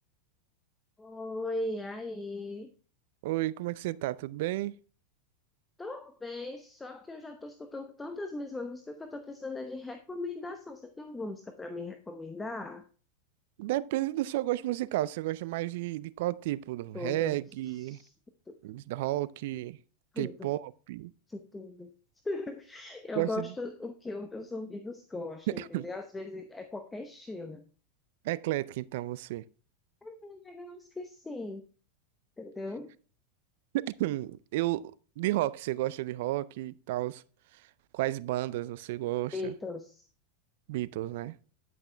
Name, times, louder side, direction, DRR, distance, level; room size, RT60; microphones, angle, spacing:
voice 1, 1.0-2.7 5.8-12.9 16.9-17.4 17.7-18.1 18.5-18.6 20.1-20.5 21.3-21.9 22.2-27.6 30.0-31.7 32.4-32.9 39.3-40.1, left 2 dB, 10° left, 0.8 m, -39 dB
voice 2, 3.2-4.8 13.6-18.0 18.6-19.8 20.2-21.1 23.2-23.5 25.5-25.9 28.2-29.4 33.7-37.2 37.9-39.5 40.7-41.4, right 16 dB, 65° right, 0.4 m, -32 dB
10.5 x 6.0 x 3.3 m
hypercardioid pair, 110°, 0 cm